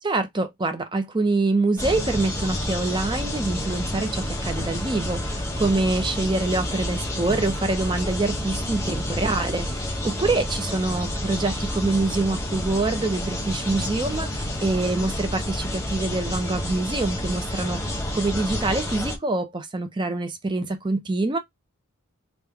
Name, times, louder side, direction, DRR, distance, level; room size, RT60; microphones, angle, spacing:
voice 1, 0.0-21.4, right 2 dB, 20° right, 0.4 m, -25 dB
sound 1, 1.8-19.2, left 1 dB, 15° left, 0.8 m, -29 dB
3.3 x 2.5 x 3.4 m
head